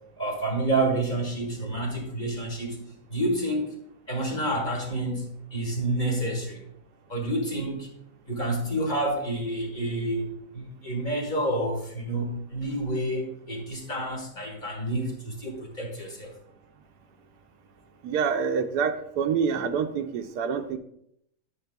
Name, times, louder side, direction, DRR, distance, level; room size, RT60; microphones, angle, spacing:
voice 1, 0.2-2.8 3.1-3.8 4.1-6.6 7.1-7.9 8.3-16.3, right 1 dB, 30° left, 0 dB, 1.4 m, -29 dB
voice 2, 18.0-20.8, right 6 dB, 85° right, 8 dB, 1.2 m, -27 dB
9.9 x 6.4 x 2.2 m, 0.73 s
omnidirectional pair, 1.7 m